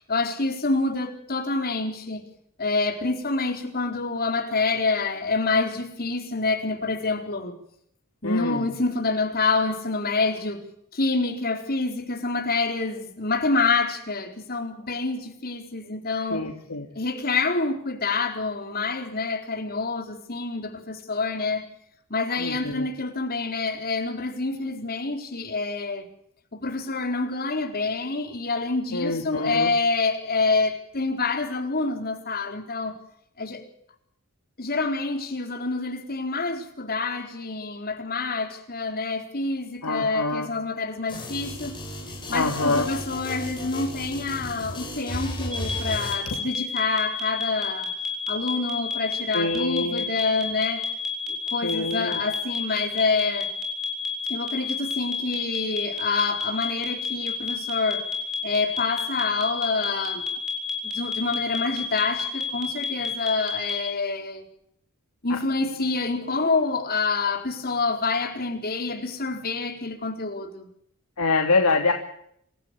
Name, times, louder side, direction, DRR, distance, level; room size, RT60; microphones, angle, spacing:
voice 1, 0.1-2.2 2.6-7.5 8.2-10.6 10.9-16.4 16.9-21.7 22.1-26.0 26.5-32.9 33.4-33.6 34.6-41.7 42.3-47.9 48.3-50.8 51.5-53.5 54.3-58.1 58.4-60.3 60.8-64.4 65.2-70.7, left 3 dB, 45° left, 4.4 m, -27 dB
voice 2, 8.2-8.7 16.2-16.9 22.4-22.9 28.9-29.7 39.8-40.5 42.3-42.9 46.3-46.4 49.3-50.1 51.6-52.2 65.3-65.4 71.2-71.9, left 3 dB, 80° left, 2.6 m, -25 dB
sound 1, 41.1-46.1, left 1 dB, 20° left, 7.5 m, -34 dB
sound 2, 45.5-63.8, left 5 dB, 5° right, 7.0 m, -29 dB
27.0 x 15.5 x 8.5 m
head